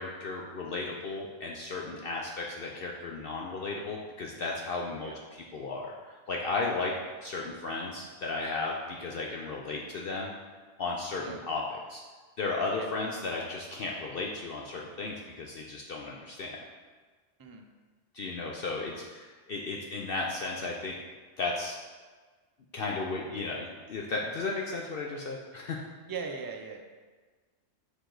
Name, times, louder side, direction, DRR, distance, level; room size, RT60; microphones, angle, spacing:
voice 1, 0.0-6.9 7.2-10.3 10.8-12.0 12.4-16.6 18.1-21.0 21.4-21.8 22.7-25.8, left 3 dB, 60° left, -1 dB, 0.8 m, -35 dB
voice 2, 26.1-26.8, right 5 dB, 35° right, 3 dB, 0.3 m, -39 dB
6.5 x 4.9 x 3.8 m, 1.4 s
omnidirectional pair, 1.2 m